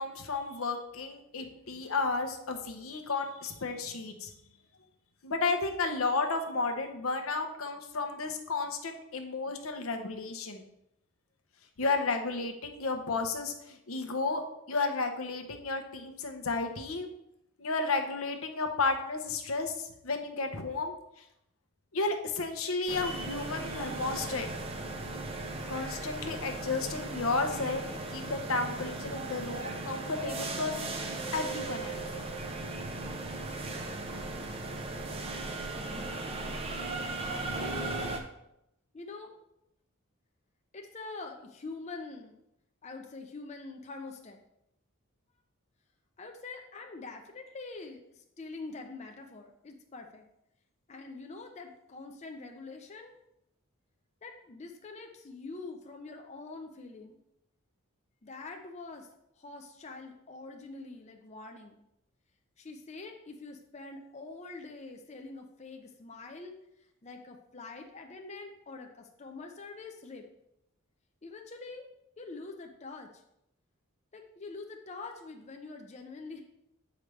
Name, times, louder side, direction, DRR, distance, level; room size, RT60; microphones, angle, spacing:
voice 1, 0.0-4.3 5.2-10.6 11.8-14.4 14.7-17.1 17.6-20.9 21.9-24.5 25.7-27.8 28.1-30.9 31.3-32.1, left 3 dB, 80° left, 5 dB, 0.8 m, -32 dB
sound 1, 22.9-38.2, right 2 dB, 25° right, 0.6 m, -37 dB
voice 2, 37.2-38.1 38.9-39.4 40.7-42.4 42.8-44.4 46.2-50.2 50.9-53.2 54.2-57.2 58.2-59.1 59.4-61.8 62.6-66.6 67.0-70.3 71.2-71.9 72.2-73.1 74.1-76.4, left 3 dB, 30° left, 3 dB, 0.6 m, -45 dB
8.1 x 5.0 x 3.2 m, 0.82 s
head